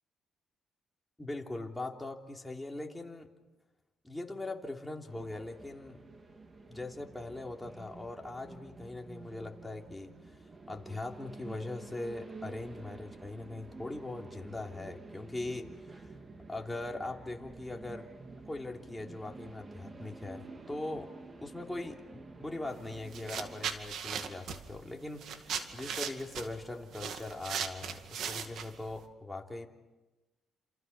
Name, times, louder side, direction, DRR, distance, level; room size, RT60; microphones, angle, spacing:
voice 1, 1.2-3.3 4.0-6.0 6.7-16.1 16.5-18.1 18.5-21.1 21.4-29.7, left 2 dB, 10° left, 1 dB, 3.3 m, -41 dB
sound 1, 5.1-23.6, right 3 dB, 30° right, 2.5 m, -50 dB
sound 2, 22.7-22.8 23.1-29.0, right 7 dB, 75° right, 2.3 m, -38 dB
29.5 x 28.0 x 6.1 m, 1.1 s
cardioid pair, 90°, 0 cm